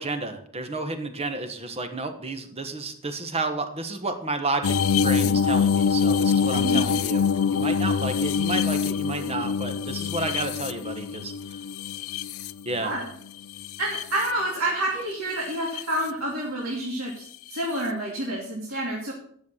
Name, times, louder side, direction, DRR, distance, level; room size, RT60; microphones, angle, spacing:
voice 1, 0.0-11.3 12.6-12.9, right 2 dB, 30° right, 7 dB, 1.2 m, -31 dB
sound 1, 4.6-13.0 13.5-14.3 15.5-15.8 17.6-17.7, left 6 dB, 70° left, 0.4 m, -25 dB
voice 2, 13.8-19.1, right 1 dB, 70° right, -3 dB, 2.6 m, -28 dB
10.5 x 7.3 x 6.4 m, 0.64 s
head